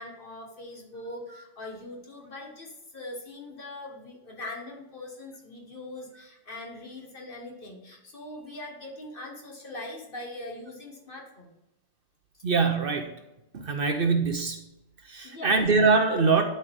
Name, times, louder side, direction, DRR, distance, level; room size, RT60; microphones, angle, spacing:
voice 1, 0.0-11.6 12.3-12.4 15.2-15.6, left 2 dB, 45° left, 0 dB, 1.8 m, -41 dB
voice 2, 12.4-13.1 13.5-14.6 15.0-16.4, right 4 dB, 55° right, 5 dB, 0.9 m, -23 dB
11.0 x 4.4 x 3.6 m, 0.90 s
omnidirectional pair, 1.2 m